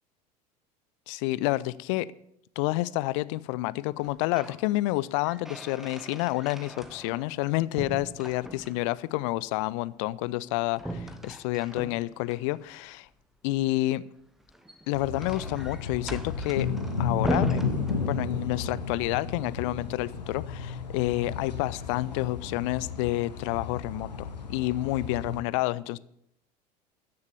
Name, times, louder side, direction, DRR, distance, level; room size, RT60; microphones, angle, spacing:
voice 1, 1.1-2.1 2.6-13.1 13.4-14.0 14.9-16.7 17.0-26.0, left 18 dB, 50° left, 19 dB, 0.5 m, -29 dB
sound 1, 4.0-4.6 5.0-7.4 7.8-9.0 10.8-12.4 14.4-18.6, right 1 dB, ahead, 0.9 m, -37 dB
sound 2, 14.9-25.4, left 5 dB, 80° left, 1.3 m, -33 dB
14.0 x 6.7 x 6.8 m, 0.74 s
figure-of-eight pair, 75°, 21 cm